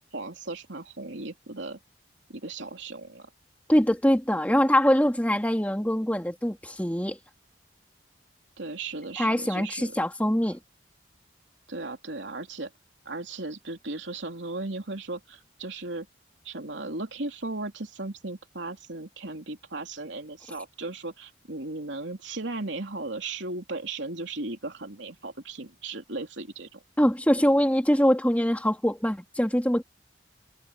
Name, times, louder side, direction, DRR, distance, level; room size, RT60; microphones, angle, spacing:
voice 1, 0.1-1.8 2.3-3.3 8.6-9.9 10.4-10.5 11.7-12.7 13.0-16.1 16.4-26.8, right 2 dB, 80° right, 3.1 m, -36 dB
voice 2, 3.7-7.2 9.2-10.6 27.0-29.8, equal, 10° left, 2.9 m, -23 dB
head